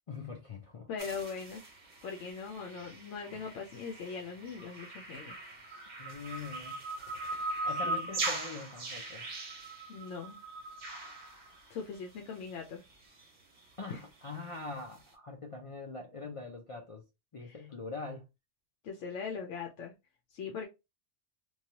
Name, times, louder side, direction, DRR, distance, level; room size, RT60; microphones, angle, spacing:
voice 1, 0.1-0.9 6.0-6.8 7.6-9.3 13.8-17.0 17.3-18.3, left 3 dB, 50° left, 0.4 m, -43 dB
voice 2, 0.9-1.6 2.0-5.4 7.8-8.1 9.7-10.4 11.7-12.8 13.9-14.0 17.4-17.6 18.8-19.9 20.3-20.7, left 5 dB, 85° left, 0.9 m, -40 dB
sound 1, 1.0-12.2 12.5-12.6 12.9-13.0 13.2-13.3 13.6-13.7, right 2 dB, 50° right, 0.7 m, -40 dB
3.1 x 2.3 x 2.8 m
omnidirectional pair, 1.2 m